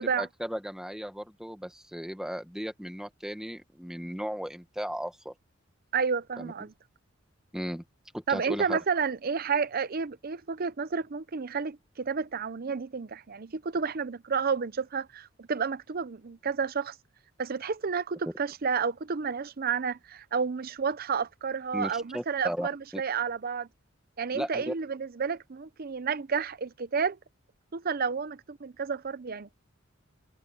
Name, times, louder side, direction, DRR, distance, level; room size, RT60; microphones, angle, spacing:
voice 1, 0.0-5.3 6.4-6.5 7.5-7.8 8.1-8.8 18.2-18.3 21.7-23.0 24.3-24.7, equal, 5° right, 1.6 m, -36 dB
voice 2, 5.9-6.7 8.3-17.0 17.4-23.7 24.2-27.2 27.7-29.5, right 5 dB, 50° right, 0.6 m, -31 dB
head